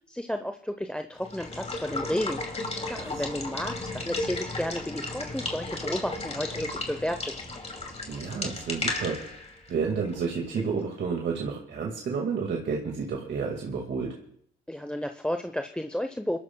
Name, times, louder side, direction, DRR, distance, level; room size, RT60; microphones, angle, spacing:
voice 1, 0.1-2.4 2.9-7.3 14.7-16.4, left 1 dB, 5° left, 7 dB, 0.8 m, -32 dB
Water / Water tap faucet / Liquid, 1.2-10.8, left 2 dB, 35° left, 2.6 m, -34 dB
voice 2, 8.1-9.2 9.7-14.1, right 5 dB, 65° right, 0 dB, 2.0 m, -30 dB
28.5 x 12.5 x 2.3 m, 0.65 s
supercardioid pair, 55°, 20 cm